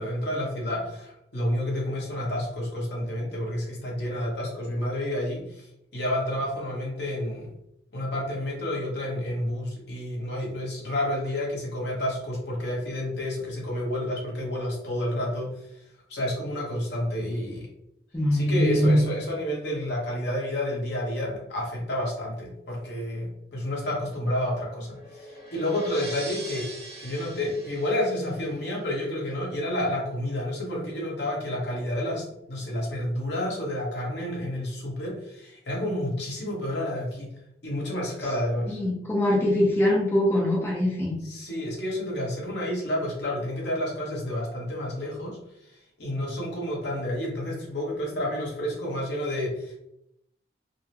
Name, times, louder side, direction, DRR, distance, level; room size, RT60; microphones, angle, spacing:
voice 1, 0.0-7.5 7.9-15.8 16.1-17.7 18.3-26.7 27.0-37.3 37.6-38.8 41.2-45.4 45.7-49.7, left 1 dB, 70° left, -3 dB, 1.1 m, -30 dB
voice 2, 18.1-19.1 38.7-41.2, left 1 dB, 15° left, -4 dB, 0.6 m, -22 dB
sound 1, 24.3-29.1, right 1 dB, 35° right, 1.3 m, -42 dB
3.7 x 2.1 x 2.9 m, 0.79 s
head